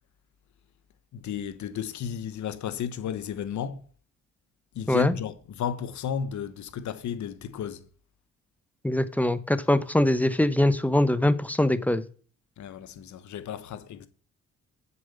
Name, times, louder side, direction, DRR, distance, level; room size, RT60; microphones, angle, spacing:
voice 1, 1.1-3.8 4.7-7.8 12.6-14.1, left 8 dB, 70° left, 1.2 m, -33 dB
voice 2, 8.8-12.0, left 1 dB, 5° left, 0.9 m, -23 dB
7.8 x 7.0 x 6.9 m
cardioid pair, 90°, 30 cm